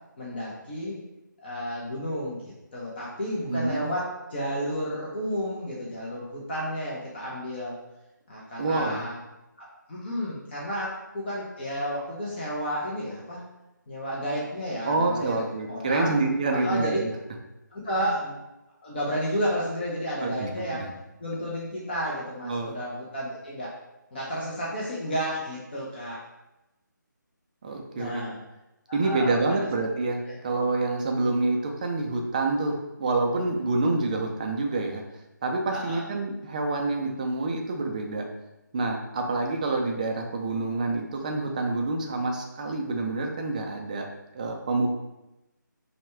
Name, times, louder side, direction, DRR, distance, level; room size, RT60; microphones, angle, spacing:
voice 1, 0.2-1.0 1.4-7.8 8.3-9.2 9.6-13.4 13.9-16.2 16.5-17.0 17.7-18.4 18.8-20.9 21.2-23.7 24.1-26.2 28.0-28.4 28.9-29.7 30.3-30.4 35.7-36.1, equal, 30° left, -5 dB, 0.7 m, -32 dB
voice 2, 3.5-3.9 8.6-9.0 14.8-17.1 20.2-20.9 22.4-22.8 27.6-28.2 28.9-35.0 35.4-38.2 38.7-44.0 44.3-44.9, right 3 dB, 25° right, 2 dB, 0.4 m, -27 dB
5.1 x 2.3 x 3.3 m, 0.96 s
figure-of-eight pair, 155°, 11 cm